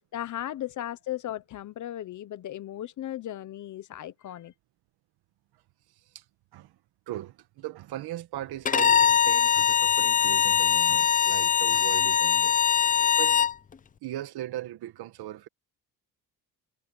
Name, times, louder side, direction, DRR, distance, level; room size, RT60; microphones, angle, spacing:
voice 1, 0.1-4.5, left 12 dB, 50° left, 1.1 m, -36 dB
voice 2, 7.1-13.5 14.0-15.5, right 14 dB, 80° right, 2.0 m, -39 dB
Bowed string instrument, 8.6-13.5, left 8 dB, 20° left, 0.5 m, -22 dB
cardioid pair, 160°, 38 cm